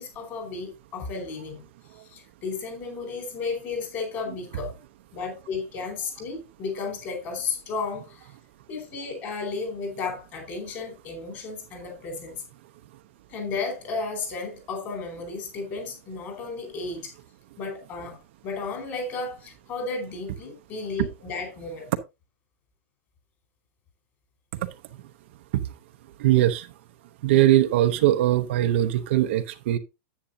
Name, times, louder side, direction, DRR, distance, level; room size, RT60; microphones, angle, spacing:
voice 1, 0.0-1.6 2.1-4.8 5.1-8.3 8.7-12.4 13.3-17.1 17.6-21.8, left 4 dB, 30° left, 4.6 m, -33 dB
voice 2, 26.2-26.7 27.2-29.8, right 13 dB, 50° right, 0.8 m, -21 dB
10.0 x 9.0 x 2.7 m
supercardioid pair, 160°, 8 cm